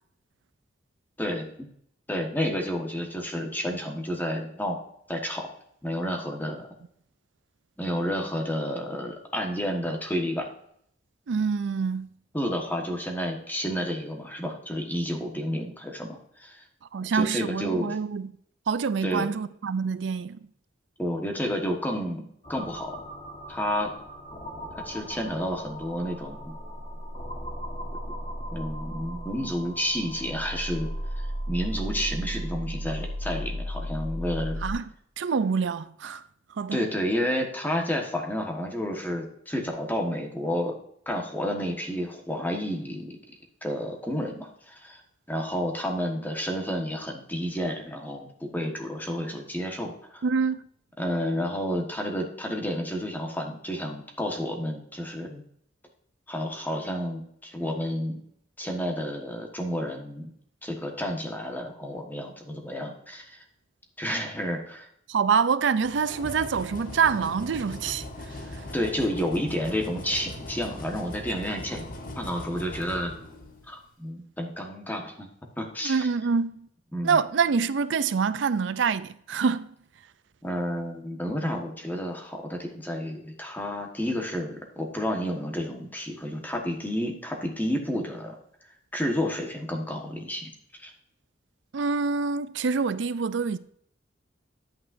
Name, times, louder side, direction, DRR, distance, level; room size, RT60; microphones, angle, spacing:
voice 1, 1.2-1.7 2.1-4.8 5.1-5.5 5.8-6.7 7.8-10.5 12.3-16.6 17.1-17.9 19.0-19.3 21.0-23.0 23.5-23.9 24.8-26.5 28.0-28.1 28.5-30.9 31.5-34.6 36.7-40.7 41.0-43.1 43.6-45.0 45.3-50.2 51.0-55.4 56.3-58.2 58.6-60.3 60.6-63.4 64.0-64.9 68.7-71.8 72.2-73.1 73.7-75.3 75.6-76.1 76.9-77.2 80.4-88.4 88.6-90.5 90.8-90.9, equal, 10° left, 1.4 m, -30 dB
voice 2, 11.3-12.1 16.9-18.3 18.7-20.4 34.6-34.8 35.2-36.2 36.6-36.8 50.2-50.6 65.1-68.6 75.8-76.7 77.0-79.7 91.7-93.6, right 5 dB, 70° right, 0.4 m, -26 dB
sound 1, 22.4-34.7, equal, 30° left, 1.5 m, -36 dB
sound 2, 65.8-73.8, left 1 dB, 50° left, 1.3 m, -40 dB
10.5 x 8.7 x 2.6 m
head